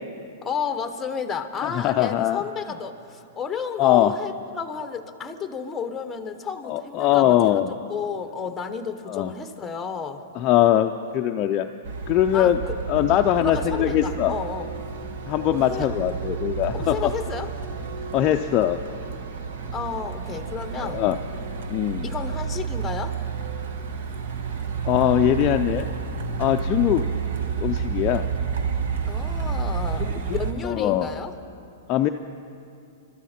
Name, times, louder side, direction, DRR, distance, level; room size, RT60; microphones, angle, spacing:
voice 1, 0.4-7.6 7.9-10.2 12.3-12.8 13.4-14.7 15.5-15.9 16.7-17.5 19.7-21.0 22.0-23.1 29.1-31.3, left 6 dB, 10° left, 8 dB, 1.0 m, -32 dB
voice 2, 1.6-2.4 3.8-4.1 6.6-7.8 9.1-9.3 10.4-11.7 12.1-12.6 12.9-14.3 15.3-17.1 18.1-18.8 20.8-21.2 21.7-22.1 24.8-25.9 26.4-27.0 27.6-28.3 30.0-30.4 30.6-31.1 31.9-32.1, left 12 dB, 30° left, 5 dB, 0.4 m, -21 dB
Truck, 11.8-30.5, right 6 dB, 65° right, 1.2 m, -30 dB
25.0 x 13.0 x 4.3 m, 2.5 s
hypercardioid pair, 145°, 0 cm